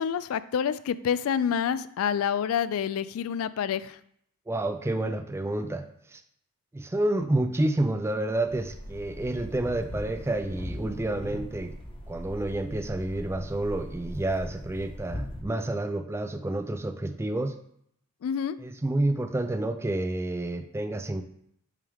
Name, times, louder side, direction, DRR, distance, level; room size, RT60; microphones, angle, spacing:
voice 1, 0.0-4.0 18.2-18.6, left 8 dB, 65° left, 16 dB, 0.3 m, -28 dB
voice 2, 4.5-5.8 6.1-6.2 6.7-11.7 12.1-17.5 18.6-21.2, right 1 dB, 10° right, 8 dB, 0.3 m, -29 dB
sound 1, 8.5-15.4, equal, 25° left, 0.7 m, -39 dB
8.3 x 3.4 x 3.6 m, 0.70 s
head